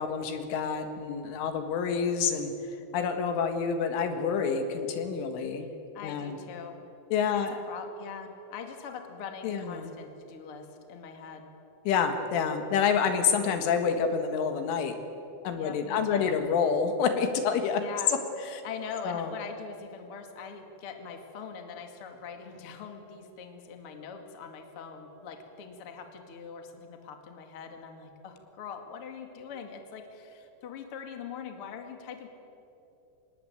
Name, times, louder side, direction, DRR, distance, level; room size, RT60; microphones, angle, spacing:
voice 1, 0.0-2.5 2.9-5.7 6.0-6.4 7.1-7.6 9.4-9.9 11.9-15.0 15.4-17.8 18.5-18.6 19.0-19.3, left 6 dB, 75° left, 6 dB, 4.1 m, -28 dB
voice 2, 5.9-6.8 7.3-11.5 15.6-16.4 17.8-18.1 18.6-32.3, left 6 dB, 45° left, 4 dB, 1.9 m, -42 dB
26.0 x 20.0 x 9.1 m, 2.9 s
omnidirectional pair, 5.9 m